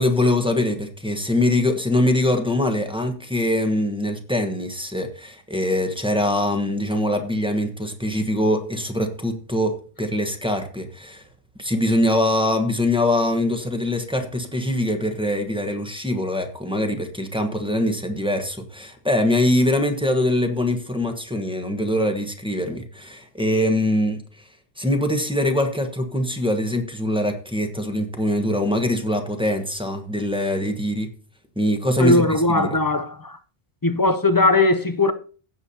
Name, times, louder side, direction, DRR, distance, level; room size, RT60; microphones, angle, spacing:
voice 1, 0.0-11.3 11.6-24.2 24.8-31.1 31.6-32.8, left 1 dB, 5° right, 1.1 m, -23 dB
voice 2, 32.0-33.4 33.8-35.1, left 2 dB, 30° left, 0.4 m, -19 dB
16.5 x 7.2 x 2.8 m
omnidirectional pair, 1.1 m